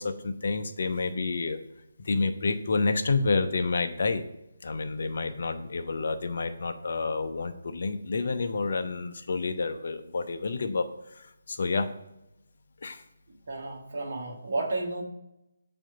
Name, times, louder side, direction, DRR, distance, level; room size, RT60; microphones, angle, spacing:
voice 1, 0.0-1.6 2.0-4.3 4.6-11.9 12.8-13.0, left 4 dB, 50° left, 8 dB, 0.5 m, -29 dB
voice 2, 13.5-15.0, right 2 dB, 50° right, 1 dB, 1.1 m, -32 dB
7.3 x 2.6 x 5.3 m, 0.88 s
figure-of-eight pair, 145°, 0 cm